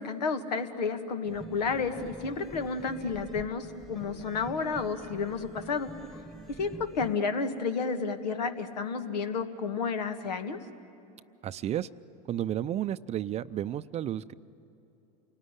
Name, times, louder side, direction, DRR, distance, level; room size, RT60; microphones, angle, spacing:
voice 1, 0.0-5.9 6.6-10.6, left 5 dB, 85° left, 8 dB, 1.7 m, -31 dB
sound 1, 1.2-7.2, right 1 dB, ahead, 1.3 m, -46 dB
voice 2, 11.4-11.9 12.3-14.3, right 11 dB, 30° right, 14 dB, 0.6 m, -32 dB
28.5 x 19.0 x 9.8 m, 3.0 s
hypercardioid pair, 105°, 21 cm